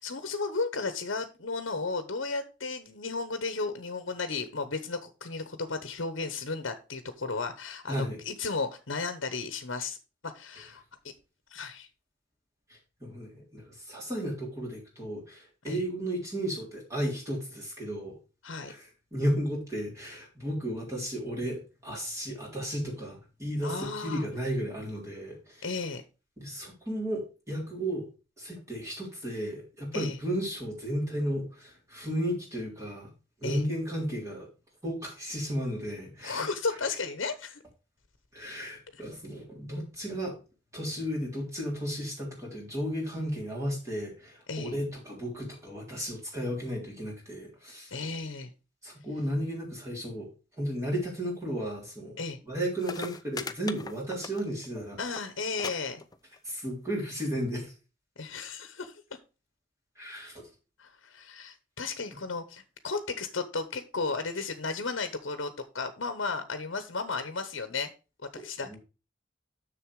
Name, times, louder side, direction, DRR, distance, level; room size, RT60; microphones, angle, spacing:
voice 1, 0.0-10.0 10.2-10.8 11.5-11.9 15.7-15.8 18.4-18.7 23.6-24.2 25.6-26.0 29.9-30.2 33.4-33.6 36.2-37.6 38.9-39.0 44.5-44.7 47.9-48.5 52.2-52.4 55.0-56.0 58.2-58.9 60.8-67.9 68.3-68.8, left 4 dB, 70° left, 9 dB, 1.0 m, -34 dB
voice 2, 7.9-8.2 12.7-18.2 18.7-25.7 26.4-28.1 28.4-33.1 33.4-34.5 34.8-36.5 38.3-40.4 40.7-47.9 48.8-50.3 50.6-52.2 52.5-55.0 56.4-57.7 60.0-60.5 68.6-68.8, equal, 15° right, -2 dB, 3.5 m, -34 dB
sound 1, 52.5-52.6 52.8-54.7 55.0-55.3 55.6-55.7 56.0-56.5 57.3-57.4, left 4 dB, 20° left, 0.5 m, -38 dB
7.0 x 6.7 x 4.7 m, 0.31 s
head